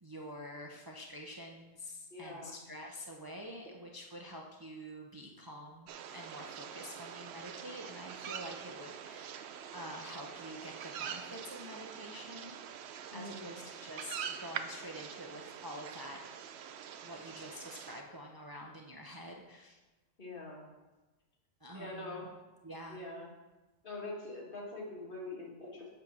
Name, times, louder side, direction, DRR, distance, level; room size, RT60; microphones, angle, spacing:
voice 1, 0.0-9.4 9.7-12.6 13.1-16.2 17.0-19.8 21.6-22.3 22.6-23.0, equal, 25° right, 0 dB, 0.6 m, -47 dB
voice 2, 2.1-2.6 13.1-13.6 20.2-20.7 21.7-22.3 22.9-23.3 23.8-25.9, left 2 dB, 55° left, -2 dB, 1.8 m, -44 dB
sound 1, 5.9-18.0, right 8 dB, 80° right, 0.8 m, -45 dB
7.3 x 4.8 x 5.9 m, 1.1 s
omnidirectional pair, 1.1 m